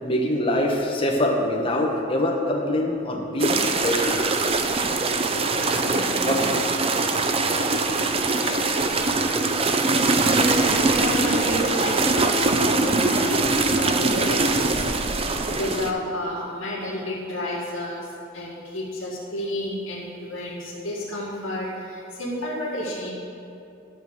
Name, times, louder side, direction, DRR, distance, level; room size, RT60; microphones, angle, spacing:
voice 1, 0.0-4.2 6.2-6.4 7.5-7.6 8.4-8.7, left 1 dB, 25° left, 0 dB, 1.1 m, -24 dB
sound 1, 3.4-15.9, right 3 dB, 30° right, 0.5 m, -22 dB
voice 2, 5.8-6.7 9.4-9.7 10.1-13.4 13.7-14.7 15.0-15.3 15.6-18.1 18.3-23.1, left 1 dB, 75° left, -5 dB, 1.9 m, -31 dB
12.0 x 4.8 x 7.1 m, 2.7 s
head